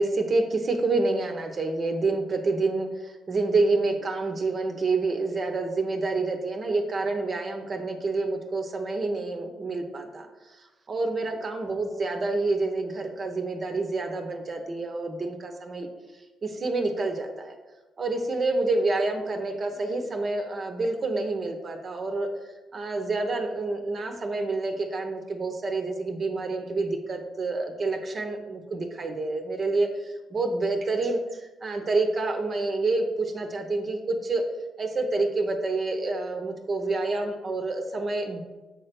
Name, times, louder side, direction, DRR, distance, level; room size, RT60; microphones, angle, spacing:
voice 1, 0.0-10.6 10.9-15.9 16.4-17.5 18.0-22.3 22.7-34.4 34.8-38.4, right 3 dB, 40° right, 4 dB, 0.9 m, -28 dB
7.2 x 3.3 x 5.9 m, 1.2 s
cardioid pair, 90°, 0 cm